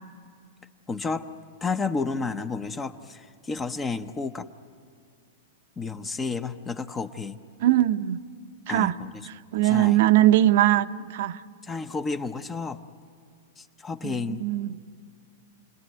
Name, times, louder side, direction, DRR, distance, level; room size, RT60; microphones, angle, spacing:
voice 1, 0.9-1.3 1.6-4.5 5.8-7.4 8.7-9.3 9.6-10.0 11.6-12.8 13.6-14.4, left 4 dB, 15° left, 10 dB, 0.8 m, -31 dB
voice 2, 7.6-8.2 8.7-8.9 9.5-11.4 14.0-14.8, right 14 dB, 60° right, 11 dB, 0.8 m, -21 dB
30.0 x 20.5 x 9.3 m, 2.2 s
supercardioid pair, 150°, 0 cm